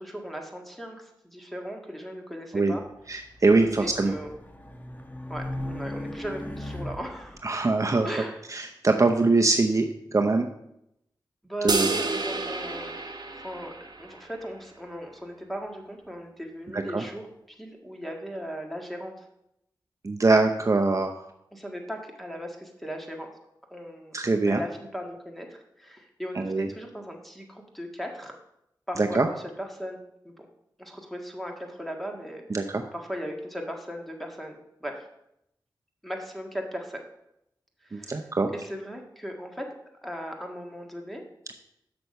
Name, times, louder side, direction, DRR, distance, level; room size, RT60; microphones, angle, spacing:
voice 1, 0.0-2.8 3.8-4.3 5.3-7.4 8.0-8.4 11.4-13.0 13.4-17.3 17.6-19.3 21.5-23.3 23.7-28.3 28.9-30.0 30.2-30.4 30.8-35.1 36.0-37.0 37.8-39.6 40.0-41.2, equal, ahead, 2 dB, 1.7 m, -38 dB
Race car auto racing, 3.0-7.4, left 1 dB, 20° left, 1.2 m, -38 dB
voice 2, 3.1-4.1 7.4-8.1 8.5-9.9 10.1-10.5 11.6-11.9 16.7-17.0 20.0-21.1 24.1-24.6 26.4-26.7 29.0-29.3 32.5-32.8 37.9-38.5, right 3 dB, 40° right, 4 dB, 0.7 m, -23 dB
sound 1, 11.7-14.2, right 3 dB, 55° right, 1.0 m, -30 dB
6.9 x 6.2 x 5.3 m, 0.81 s
cardioid pair, 50°, 8 cm